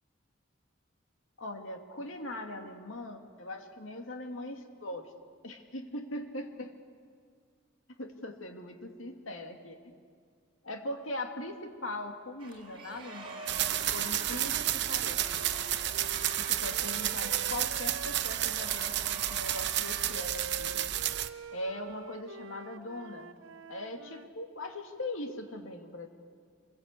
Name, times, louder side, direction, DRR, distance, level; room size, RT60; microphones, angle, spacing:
voice 1, 1.4-5.1 5.4-6.7 7.9-10.0 10.6-15.5 16.4-20.8 21.5-23.4 23.7-26.1, left 1 dB, 85° left, 5 dB, 2.2 m, -40 dB
sound 1, 12.4-20.1, right 3 dB, 25° right, 3.6 m, -46 dB
sound 2, 13.5-21.3, right 12 dB, 60° right, 0.8 m, -31 dB
Wind instrument woodwind instrument, 13.6-18.6 19.3-24.3, right 4 dB, 85° right, 0.6 m, -46 dB
26.0 x 21.5 x 8.3 m, 2.1 s
head